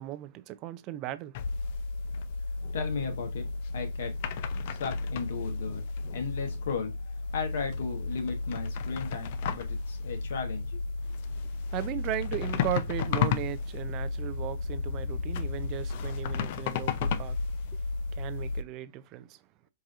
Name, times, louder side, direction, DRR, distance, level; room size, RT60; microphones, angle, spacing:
voice 1, 0.0-1.3 11.7-17.4 17.7-17.8 18.1-19.4, right 14 dB, 40° right, 0.4 m, -36 dB
sound 1, 1.3-18.6, left 4 dB, 55° left, 0.4 m, -33 dB
voice 2, 2.7-3.4 3.7-4.1 4.7-5.8 6.1-10.8, left 5 dB, 70° left, 1.1 m, -35 dB
4.7 x 2.7 x 2.4 m
hypercardioid pair, 125°, 0 cm